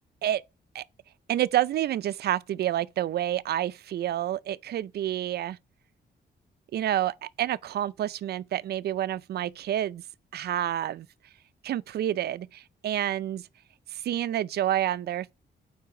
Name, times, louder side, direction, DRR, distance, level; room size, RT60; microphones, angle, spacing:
voice 1, 1.3-5.6 6.7-10.0 10.3-11.1 11.6-13.5 13.9-15.3, right 12 dB, 65° right, 0.4 m, -28 dB
9.2 x 4.0 x 3.7 m
wide cardioid pair, 155°, 18 cm